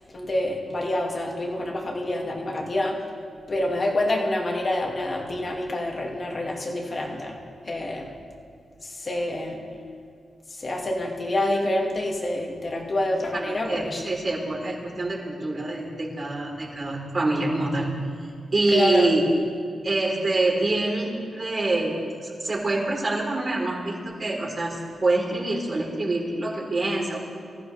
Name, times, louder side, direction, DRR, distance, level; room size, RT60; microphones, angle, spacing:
voice 1, 0.1-3.0 3.5-7.4 7.6-8.1 8.8-9.6 10.5-14.0 18.7-19.1, left 1 dB, 40° left, -1 dB, 2.4 m, -27 dB
voice 2, 13.4-18.0 18.5-19.3 19.8-27.2, right 2 dB, 40° right, -3 dB, 4.2 m, -26 dB
24.5 x 14.5 x 3.5 m, 2.2 s
cardioid pair, 100°, 0 cm